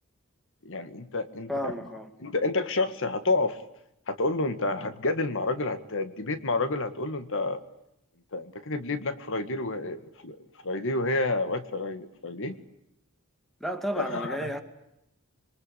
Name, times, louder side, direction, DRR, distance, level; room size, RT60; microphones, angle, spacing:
voice 1, 0.6-1.5 2.2-3.6 4.1-7.6 8.3-12.6 14.0-14.5, left 2 dB, 60° left, 1.8 m, -29 dB
voice 2, 1.5-2.1 13.6-14.6, equal, ahead, 2.3 m, -32 dB
27.0 x 23.0 x 8.4 m
head